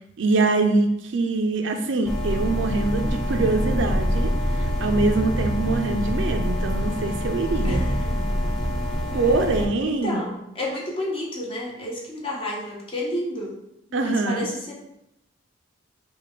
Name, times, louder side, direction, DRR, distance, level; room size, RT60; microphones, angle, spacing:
voice 1, 0.2-7.8 9.1-10.2 13.9-14.5, right 3 dB, 65° right, 5 dB, 0.4 m, -24 dB
sound 1, 2.0-9.7, equal, ahead, 0.5 m, -25 dB
voice 2, 7.6-8.6 9.1-9.4 10.0-13.5 13.9-14.7, left 1 dB, 30° left, -3 dB, 0.9 m, -31 dB
5.0 x 2.3 x 3.1 m, 0.81 s
head